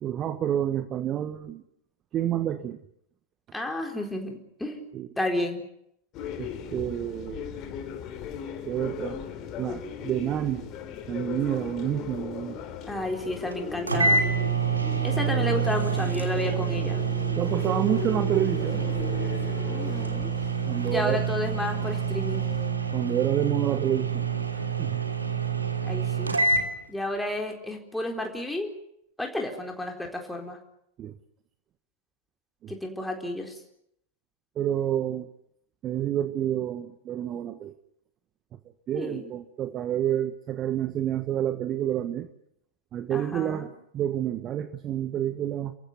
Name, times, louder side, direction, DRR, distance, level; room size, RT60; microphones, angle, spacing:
voice 1, 0.0-1.6 2.1-2.8 4.9-5.1 6.4-7.5 8.7-9.2 9.6-10.7 11.1-12.6 17.4-18.9 20.7-21.2 22.9-24.3 24.6-25.0 31.0-31.1 32.6-32.7 34.6-35.3 35.8-37.7 38.9-42.3 42.9-45.7, right 11 dB, 30° right, 11 dB, 1.4 m, -29 dB
voice 2, 3.5-4.8 5.2-5.6 12.9-14.2 15.0-17.0 19.7-20.3 20.9-22.4 25.8-26.3 26.9-28.7 29.2-30.6 32.7-33.6 38.9-39.3 43.1-43.7, left 1 dB, 5° left, 2 dB, 4.2 m, -31 dB
sound 1, 6.1-22.7, left 8 dB, 35° left, 3.2 m, -38 dB
sound 2, 13.5-13.6 13.9-26.7, right 5 dB, 80° right, 3.1 m, -27 dB
29.5 x 15.5 x 9.6 m, 0.75 s
figure-of-eight pair, 90°, 0 cm